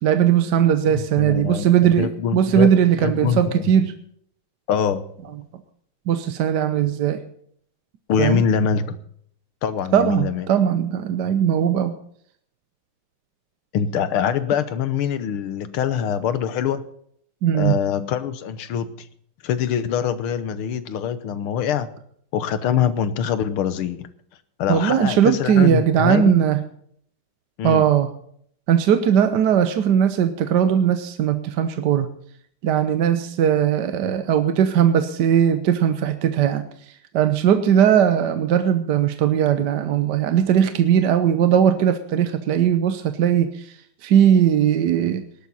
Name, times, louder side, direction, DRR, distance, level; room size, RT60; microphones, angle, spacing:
voice 1, 0.0-3.9 6.1-7.2 8.2-8.4 9.9-12.0 17.4-17.8 24.7-26.6 27.6-28.1 28.7-32.1 32.6-36.6 37.1-43.8 44.0-45.2, right 9 dB, 60° right, 10 dB, 1.3 m, -19 dB
voice 2, 0.9-2.7 3.0-3.7 4.7-5.0 8.1-9.0 9.6-10.5 13.7-16.8 17.5-19.1 19.4-21.9 22.3-24.1 24.6-26.4 27.6-27.9, left 8 dB, 80° left, 13 dB, 1.9 m, -24 dB
18.5 x 12.0 x 4.1 m, 0.64 s
omnidirectional pair, 2.3 m